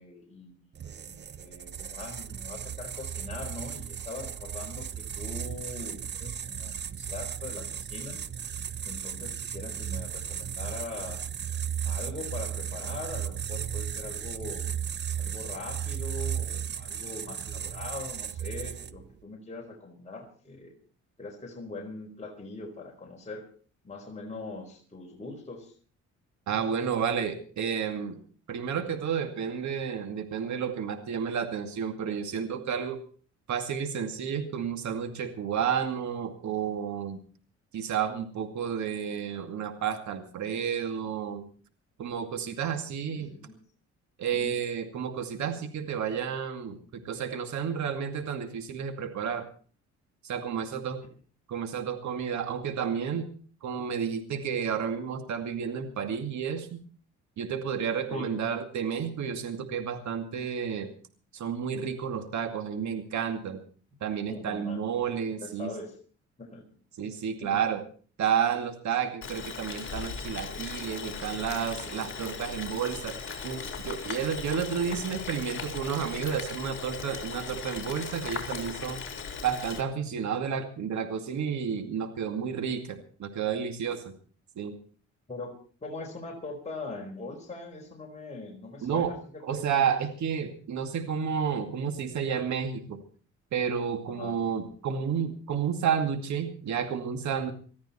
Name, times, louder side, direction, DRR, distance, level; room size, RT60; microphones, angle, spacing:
voice 1, 0.0-8.2 8.8-11.3 11.8-14.7 15.2-20.7 21.2-23.5 23.8-25.7 43.1-43.6 44.3-44.6 58.1-58.3 64.3-64.9 65.3-66.0 66.4-66.7 67.0-67.1 67.4-67.6 85.3-85.5 85.8-90.0 94.1-94.4, left 3 dB, 25° left, -1 dB, 4.5 m, -41 dB
sound 1, 0.7-19.1, right 9 dB, 35° right, 0.7 m, -35 dB
voice 2, 26.5-28.2 28.5-33.0 33.5-37.2 37.7-41.4 42.0-43.3 44.2-49.5 50.2-51.0 51.5-53.3 53.6-56.8 57.4-60.9 61.3-63.6 64.0-65.7 67.0-67.8 68.2-73.1 73.4-79.0 79.4-84.0 84.6-84.8 88.8-89.1 89.4-93.0 93.5-97.5, right 7 dB, 70° right, 7 dB, 2.4 m, -31 dB
Boiling, 69.2-79.8, left 5 dB, 40° left, 4.4 m, -38 dB
20.5 x 14.0 x 4.4 m, 0.42 s
cardioid pair, 90°, 30 cm